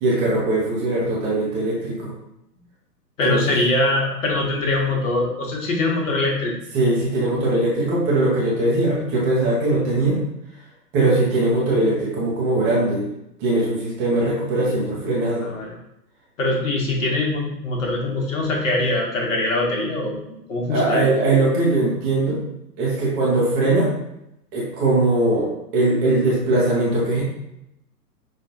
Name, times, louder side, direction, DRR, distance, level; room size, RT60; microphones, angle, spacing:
voice 1, 0.0-2.1 3.2-3.4 6.7-10.2 10.9-13.1 13.4-15.5 20.7-22.4 22.8-23.9 24.5-27.2, right 2 dB, 10° right, -6 dB, 0.6 m, -20 dB
voice 2, 3.2-6.5 15.4-15.7 16.4-20.2 20.5-21.1, left 2 dB, 50° left, -1 dB, 1.2 m, -22 dB
5.7 x 2.4 x 2.8 m, 0.82 s
figure-of-eight pair, 115°, 49 cm